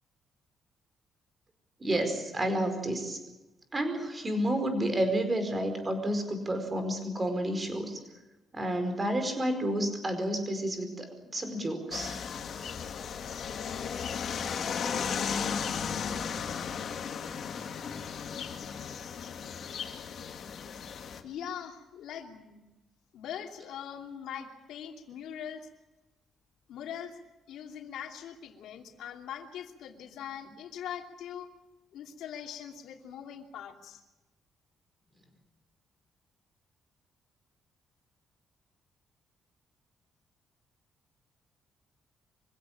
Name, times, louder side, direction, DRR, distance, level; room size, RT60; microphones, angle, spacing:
voice 1, 1.8-3.2 3.7-8.0 8.5-12.1, right 1 dB, 20° right, 7 dB, 4.7 m, -30 dB
sound 1, 11.9-21.2, left 7 dB, 55° left, 2.0 m, -35 dB
voice 2, 21.2-22.6 23.1-25.7 26.7-27.2 27.5-31.5 31.9-34.0, left 9 dB, 85° left, 3 dB, 2.8 m, -42 dB
25.0 x 16.5 x 8.7 m, 1.1 s
cardioid pair, 130°, 0 cm